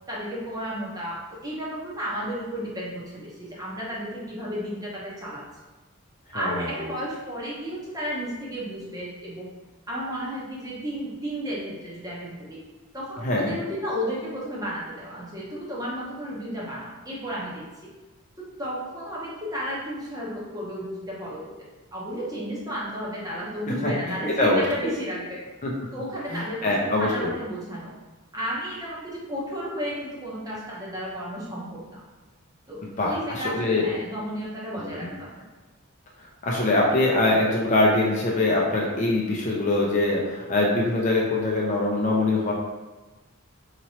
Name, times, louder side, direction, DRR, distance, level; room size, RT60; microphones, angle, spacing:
voice 1, 0.1-5.4 6.3-9.5 9.9-12.6 12.9-17.6 18.4-25.5 25.9-27.9 28.3-32.0 32.7-35.5, equal, 15° right, -6 dB, 0.8 m, -33 dB
voice 2, 6.3-6.7 13.2-13.5 23.8-23.9 24.4-24.6 25.6-25.7 26.3-27.3 33.0-33.9 34.7-35.1 36.4-42.5, left 2 dB, 35° left, -3 dB, 0.5 m, -23 dB
4.3 x 2.9 x 2.8 m, 1.2 s
head